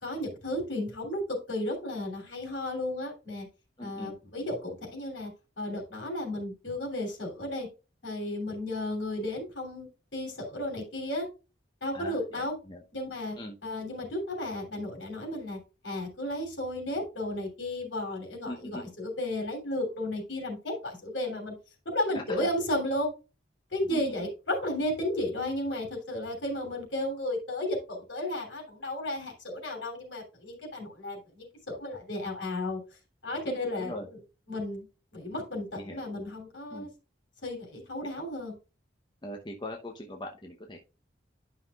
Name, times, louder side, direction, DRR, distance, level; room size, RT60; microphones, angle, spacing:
voice 1, 0.0-3.5 3.8-5.3 5.6-7.7 8.0-11.3 11.8-12.5 12.9-13.4 13.6-15.6 15.8-21.5 21.8-23.1 23.7-32.8 33.2-33.9 34.5-34.9 35.1-36.9 37.4-38.5, left 1 dB, 75° left, 1 dB, 3.1 m, -33 dB
voice 2, 3.8-4.1 11.9-12.8 13.4-13.6 18.4-18.9 22.1-22.5 23.9-24.0 33.4-34.1 35.7-36.0 36.7-36.9 39.2-40.8, left 1 dB, 25° left, 2 dB, 0.8 m, -41 dB
11.5 x 5.7 x 2.4 m, 0.31 s
head